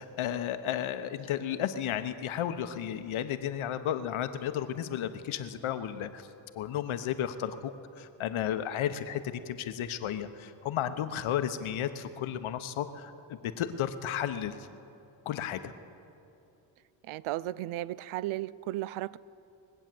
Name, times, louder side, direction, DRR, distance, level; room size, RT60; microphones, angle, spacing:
voice 1, 0.0-6.3 6.5-14.7 15.2-15.7, left 10 dB, 75° left, 1.0 m, -33 dB
voice 2, 17.0-19.2, right 16 dB, 75° right, 0.5 m, -35 dB
22.0 x 8.1 x 7.6 m
cardioid pair, 70°, 49 cm